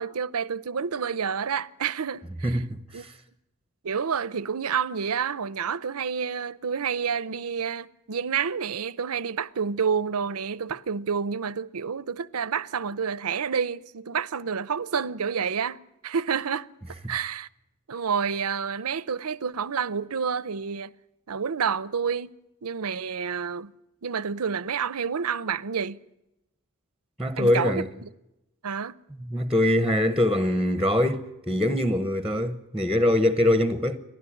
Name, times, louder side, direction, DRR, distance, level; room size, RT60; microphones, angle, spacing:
voice 1, 0.0-2.6 2.9-3.0 3.8-16.7 17.1-17.5 17.9-20.9 21.3-22.3 22.6-23.7 24.0-26.0 27.4-28.1 28.6-29.0, right 6 dB, 80° right, 0.7 m, -29 dB
voice 2, 2.4-3.1 27.2-27.9 29.2-34.0, left 1 dB, 5° right, 0.9 m, -23 dB
30.0 x 12.0 x 10.0 m
head